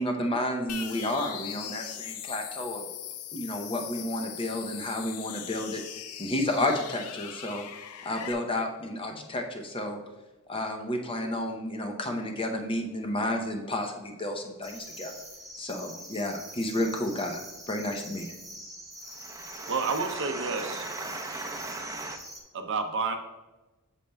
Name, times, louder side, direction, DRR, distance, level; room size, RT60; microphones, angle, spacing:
voice 1, 0.0-2.9 3.3-5.8 6.2-7.6 8.0-10.0 10.5-15.1 15.6-17.4 17.7-18.3, left 1 dB, 25° left, 4 dB, 0.7 m, -31 dB
sound 1, 0.7-8.3, left 10 dB, 80° left, 0.5 m, -40 dB
sound 2, 14.6-22.4, right 1 dB, ahead, 1.5 m, -45 dB
voice 2, 19.0-22.2, right 2 dB, 15° right, 3 dB, 0.7 m, -38 dB
voice 3, 19.7-20.8 22.5-23.2, right 4 dB, 60° right, 6 dB, 0.6 m, -29 dB
8.3 x 6.8 x 2.3 m, 1.1 s
head